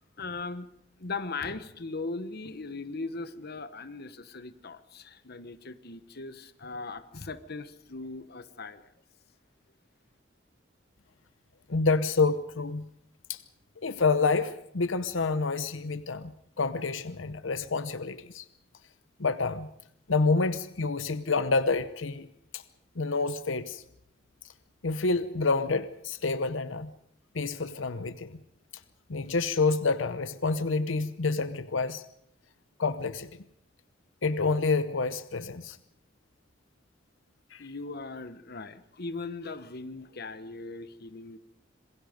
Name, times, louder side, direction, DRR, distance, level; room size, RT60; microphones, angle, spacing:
voice 1, 0.2-0.7 1.0-8.9 37.6-41.4, left 3 dB, 55° left, 11 dB, 1.2 m, -39 dB
voice 2, 11.7-12.8 13.3-13.4 13.8-18.4 19.2-19.7 20.1-22.3 22.5-22.6 23.0-23.8 24.8-26.9 27.3-28.4 29.1-32.0 32.8-33.3 34.2-35.8 37.5-37.6, left 4 dB, 90° left, 12 dB, 0.8 m, -28 dB
27.0 x 21.0 x 5.2 m, 0.73 s
head